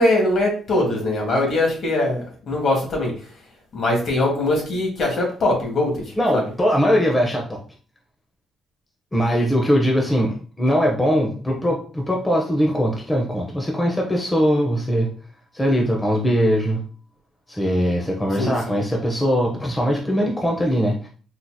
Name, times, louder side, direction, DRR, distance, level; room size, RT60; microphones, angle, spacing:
voice 1, 0.0-3.1 3.7-6.0 6.3-6.4 18.4-18.8, left 1 dB, 55° left, 0 dB, 1.5 m, -21 dB
voice 2, 6.2-7.6 9.1-15.1 15.5-16.8 17.5-21.1, equal, 15° left, 0 dB, 0.8 m, -21 dB
4.0 x 2.9 x 2.3 m, 0.41 s
cardioid pair, 90°, 0 cm